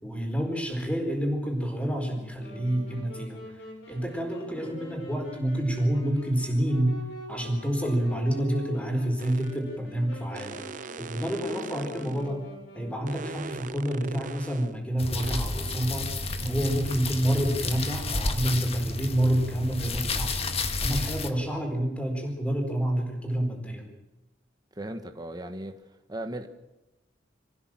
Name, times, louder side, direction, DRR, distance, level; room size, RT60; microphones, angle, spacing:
voice 1, 0.0-7.0 7.3-10.6 11.0-12.5 12.7-16.1 16.4-20.4 20.8-23.8, right 1 dB, 5° left, 2 dB, 4.3 m, -28 dB
Wind instrument woodwind instrument, 2.4-13.3, equal, 75° left, 7.7 m, -44 dB
sound 1, 9.2-9.6 10.3-12.3 13.1-14.7 15.2-15.4, right 4 dB, 45° right, 0.6 m, -41 dB
sound 2, 15.0-21.3, left 2 dB, 35° left, 1.6 m, -31 dB
voice 2, 24.8-25.7 26.1-26.5, right 1 dB, 20° right, 7 dB, 1.3 m, -36 dB
26.0 x 15.5 x 7.5 m, 0.99 s
head